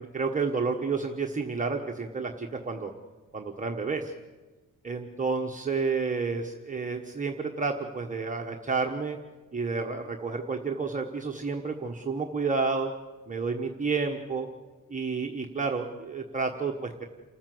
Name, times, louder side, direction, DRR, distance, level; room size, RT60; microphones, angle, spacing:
voice 1, 0.0-2.9 3.3-4.1 4.8-9.2 9.5-12.9 13.3-14.5 14.9-17.0, right 4 dB, 25° right, 1 dB, 1.2 m, -30 dB
28.0 x 14.5 x 7.7 m, 1.2 s
wide cardioid pair, 155°, 33 cm